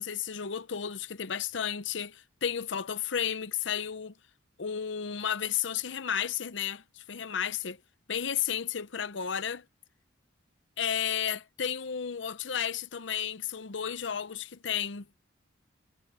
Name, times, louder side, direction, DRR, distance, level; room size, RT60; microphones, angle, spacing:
voice 1, 0.0-4.1 4.6-7.8 8.1-9.6 10.8-15.1, left 8 dB, 65° left, 0.7 m, -33 dB
head